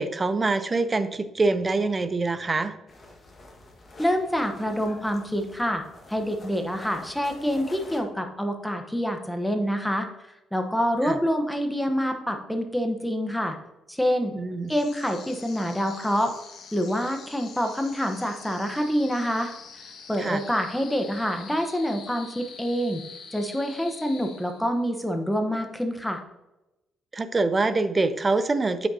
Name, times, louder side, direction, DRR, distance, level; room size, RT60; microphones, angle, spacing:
voice 1, 0.0-2.7 11.0-11.2 14.3-14.7 20.2-20.4 27.1-28.9, right 3 dB, 30° right, 12 dB, 0.6 m, -25 dB
sound 1, 2.9-8.0, left 2 dB, 35° left, 1.6 m, -48 dB
voice 2, 4.0-5.8 6.1-10.1 10.5-13.6 13.9-14.3 14.7-16.3 16.7-19.5 20.1-23.0 23.3-26.2, equal, 5° left, 5 dB, 1.0 m, -26 dB
sound 2, 14.6-24.9, left 5 dB, 70° left, 1.3 m, -45 dB
8.2 x 6.1 x 2.8 m, 0.98 s
cardioid pair, 90°, 0 cm